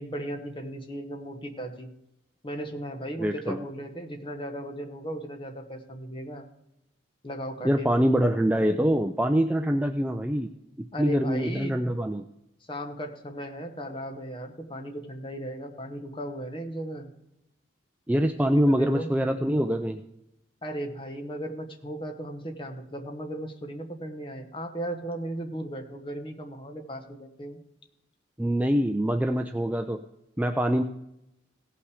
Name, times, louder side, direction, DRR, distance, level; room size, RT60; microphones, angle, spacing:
voice 1, 0.0-1.9 2.4-6.5 7.2-8.0 10.9-11.8 12.7-17.1 18.4-19.1 20.6-27.6, right 1 dB, 25° left, 4 dB, 1.1 m, -36 dB
voice 2, 3.2-3.7 7.6-10.5 11.0-12.3 18.1-20.0 28.4-30.0 30.4-30.8, equal, 10° right, 5 dB, 0.3 m, -24 dB
17.0 x 5.8 x 4.9 m, 0.84 s
head